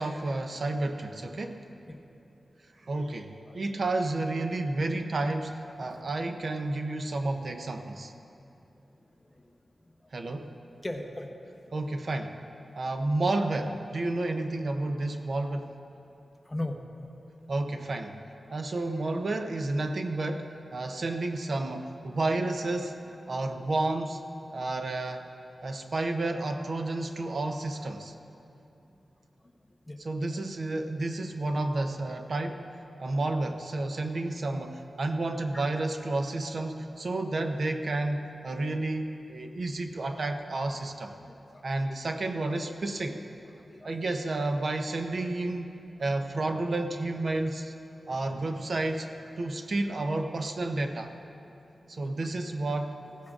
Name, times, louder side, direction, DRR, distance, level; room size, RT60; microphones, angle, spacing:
voice 1, 0.0-1.6 2.8-8.1 10.1-10.5 11.7-12.4 12.8-15.7 17.5-18.2 18.5-23.0 23.3-24.2 24.5-25.3 25.6-28.1 30.0-32.6 33.0-41.1 41.6-43.2 43.8-45.7 46.0-47.7 48.1-49.1 49.4-51.1 51.9-53.0, right 2 dB, 55° right, 6 dB, 0.6 m, -31 dB
voice 2, 3.5-3.8 9.3-9.4 10.8-11.3 16.5-17.1 20.2-20.3 29.9-30.0 30.3-30.4 35.5-35.8 36.9-37.0 41.2-41.6 43.5-43.9 49.4-49.6 52.0-52.1, left 1 dB, 15° left, 2 dB, 0.9 m, -39 dB
16.0 x 15.0 x 2.5 m, 2.8 s
wide cardioid pair, 105°, 0 cm